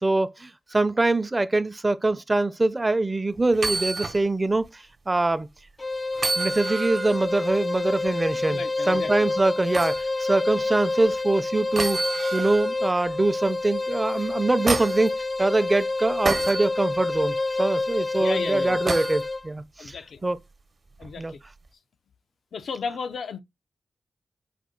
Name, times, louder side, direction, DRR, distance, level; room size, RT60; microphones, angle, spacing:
voice 1, 0.0-5.5 6.4-12.0 12.3-20.0 20.2-20.4 21.2-21.3, right 2 dB, 25° right, 0.5 m, -24 dB
sound 1, 3.5-4.2 4.6-4.7 6.1-7.2 9.7-10.0 11.7-12.7 14.2-15.1 16.2-16.7 18.9-19.2 21.0-21.1, right 3 dB, 50° right, 0.8 m, -28 dB
sound 2, 5.8-19.5, left 3 dB, 30° left, 0.3 m, -28 dB
voice 2, 8.5-9.3 18.2-18.8 19.8-20.3 21.0-21.4 22.5-23.4, left 5 dB, 85° left, 0.5 m, -34 dB
5.3 x 2.6 x 3.7 m
cardioid pair, 75°, 0 cm